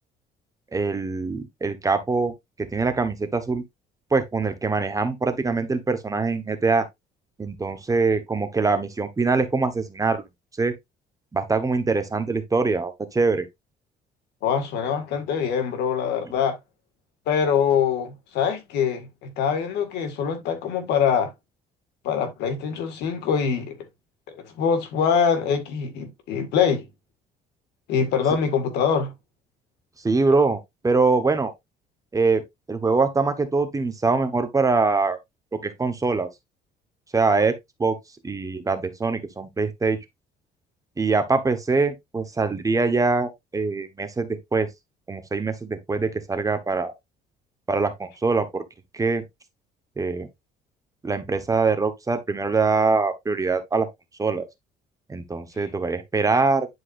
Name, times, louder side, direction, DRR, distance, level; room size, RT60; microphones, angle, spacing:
voice 1, 0.7-2.3 2.7-3.6 4.1-6.9 7.4-10.2 10.6-10.7 11.3-13.5 30.0-31.5 32.1-32.4 32.7-35.2 35.5-36.3 37.1-37.5 37.8-38.0 38.2-40.0 41.0-44.7 45.1-46.9 47.7-48.6 48.9-49.2 50.0-50.3 51.0-53.9 54.2-54.5 55.1-56.7, right 4 dB, 20° right, 1.3 m, -23 dB
voice 2, 14.4-16.6 17.3-21.3 22.0-23.8 24.6-26.9 27.9-29.1, left 7 dB, 80° left, 2.0 m, -24 dB
10.0 x 4.7 x 2.6 m
cardioid pair, 110°, 17 cm